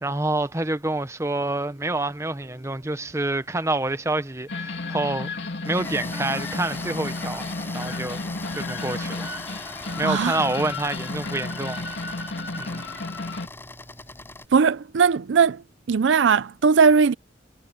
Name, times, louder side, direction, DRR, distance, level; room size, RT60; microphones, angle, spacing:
voice 1, 0.0-5.3 5.6-7.5 7.7-8.2 8.5-9.6 10.0-11.8 12.6-12.8, right 2 dB, 15° right, 0.8 m, -27 dB
Gong, 1.2-15.4, equal, 30° right, 5.7 m, -57 dB
sound 1, 4.5-13.5, left 2 dB, 65° left, 2.7 m, -32 dB
sound 2, 5.6-14.5, left 2 dB, 10° left, 5.4 m, -39 dB
voice 2, 10.0-10.4 14.5-15.6 15.9-17.1, right 5 dB, 70° right, 0.4 m, -19 dB
head